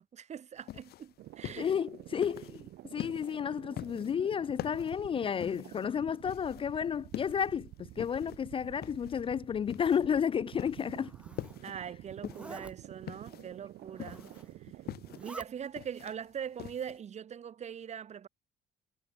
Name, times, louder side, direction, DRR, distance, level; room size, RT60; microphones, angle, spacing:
voice 1, 0.0-1.7 11.6-14.2 14.6-14.7 15.2-18.3, right 8 dB, 40° right, 1.4 m, -42 dB
sound 1, 0.6-17.0, left 14 dB, 70° left, 2.9 m, -45 dB
sound 2, 1.2-15.3, right 15 dB, 75° right, 4.1 m, -50 dB
voice 2, 1.6-2.6 2.9-11.1, left 8 dB, 30° left, 0.4 m, -32 dB
Zipper (clothing), 10.8-11.6 12.2-12.7 13.8-14.6 15.0-15.5, right 1 dB, 5° right, 1.5 m, -49 dB
cardioid pair, 110°, 17 cm